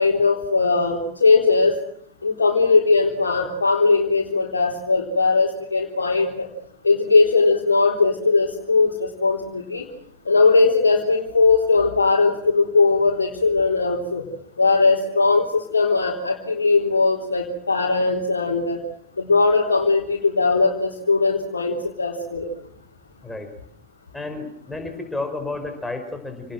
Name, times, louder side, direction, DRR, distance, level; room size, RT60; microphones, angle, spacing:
voice 1, 0.0-1.7 2.2-6.5 6.8-9.9 10.3-14.2 14.6-18.8 19.2-22.5, left 4 dB, 75° left, -1 dB, 3.7 m, -19 dB
voice 2, 24.1-26.5, left 2 dB, 5° left, 5 dB, 5.1 m, -31 dB
29.0 x 19.5 x 7.8 m, 0.66 s
figure-of-eight pair, 90°, 0 cm